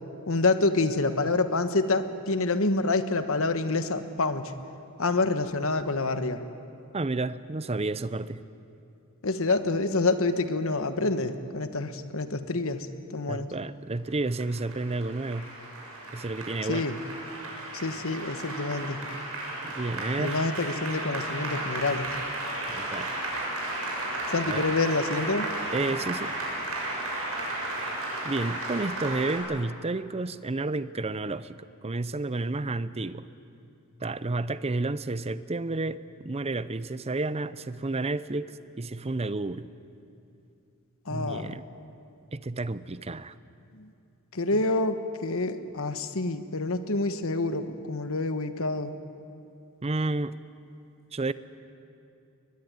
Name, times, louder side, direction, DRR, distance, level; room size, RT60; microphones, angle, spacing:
voice 1, 0.3-4.5 5.0-6.4 9.2-13.5 16.6-17.0 17.7-19.0 20.2-22.1 24.3-25.5 41.1-41.5 43.7-43.9 44.3-48.9, left 3 dB, 65° left, 10 dB, 1.3 m, -27 dB
voice 2, 6.9-8.4 13.3-15.5 16.1-16.9 19.6-20.4 22.7-23.1 24.4-24.7 25.7-26.3 28.2-33.2 34.0-39.7 41.1-41.6 42.3-43.3 44.5-44.6 49.8-50.4 51.1-51.3, right 2 dB, 25° right, 15 dB, 0.6 m, -31 dB
Applause, 14.1-29.4, right 1 dB, 75° right, 6.8 m, -34 dB
22.5 x 20.5 x 9.6 m, 2.6 s
head